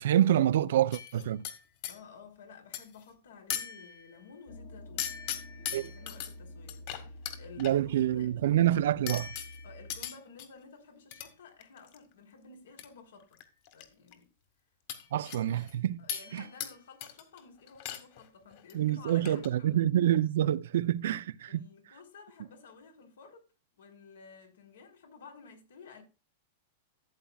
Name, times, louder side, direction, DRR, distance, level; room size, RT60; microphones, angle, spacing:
voice 1, 0.0-1.4 5.7-5.9 7.6-9.3 15.1-16.0 16.3-16.4 18.7-21.7, right 12 dB, 75° right, 0.5 m, -27 dB
sound 1, 0.9-2.0 2.7-3.0 3.5-4.2 5.0-6.3 6.7-7.7 9.1-10.5 11.1-11.3 11.6-12.0 12.8-12.9 13.2-13.8 14.1-14.2 14.9-15.7 16.1-16.8 17.0-17.4 17.7-18.2 18.5-18.7 19.1-19.5, left 9 dB, 50° left, 2.0 m, -39 dB
voice 2, 1.9-5.1 5.5-8.3 9.6-13.4 13.7-14.3 16.0-19.7 21.5-23.5 23.8-26.0, left 5 dB, 90° left, 3.7 m, -53 dB
sound 2, 4.5-10.0, left 1 dB, 70° left, 2.7 m, -48 dB
13.5 x 8.5 x 2.3 m
supercardioid pair, 145°, 0 cm